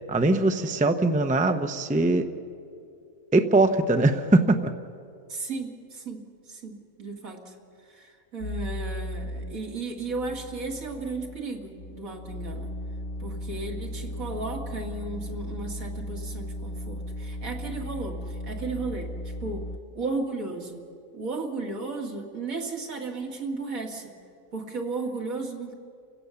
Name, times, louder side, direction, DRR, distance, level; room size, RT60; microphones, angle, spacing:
voice 1, 0.1-2.2 3.3-4.6, right 2 dB, 10° right, 7 dB, 0.6 m, -21 dB
voice 2, 5.3-7.5 7.9-12.7 13.2-19.1 19.4-19.6 19.9-20.8 21.1-24.1 24.5-25.7, right 3 dB, 80° right, 1 dB, 2.6 m, -34 dB
sound 1, 8.4-9.6 10.0-19.8, left 1 dB, 50° left, 0.8 m, -36 dB
29.5 x 16.0 x 7.0 m, 2.5 s
omnidirectional pair, 1.4 m